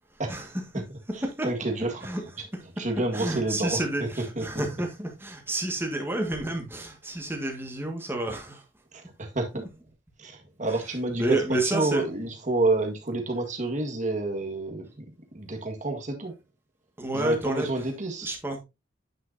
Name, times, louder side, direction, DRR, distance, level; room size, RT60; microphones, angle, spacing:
voice 1, 1.4-2.1 2.8-4.1 4.4-4.5 8.9-9.6 10.2-11.4 11.7-16.3 17.1-18.3, right 2 dB, 40° right, 1.7 m, -29 dB
voice 2, 3.1-8.6 11.1-12.0 17.0-17.7 18.2-18.6, right 1 dB, 10° right, 1.7 m, -30 dB
9.3 x 5.8 x 2.7 m
head